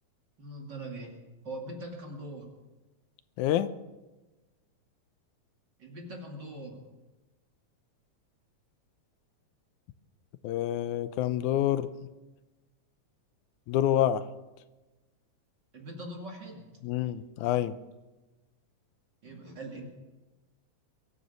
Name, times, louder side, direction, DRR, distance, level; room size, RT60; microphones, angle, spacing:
voice 1, 0.4-1.2 1.4-2.5 5.8-6.9 15.7-16.7 17.0-17.1 19.2-19.8, right 1 dB, 35° right, 1 dB, 2.8 m, -41 dB
voice 2, 3.4-3.7 10.4-11.9 13.7-14.3 16.8-17.7, left 12 dB, 85° left, 13 dB, 2.1 m, -27 dB
22.5 x 9.3 x 6.8 m, 1.1 s
omnidirectional pair, 3.4 m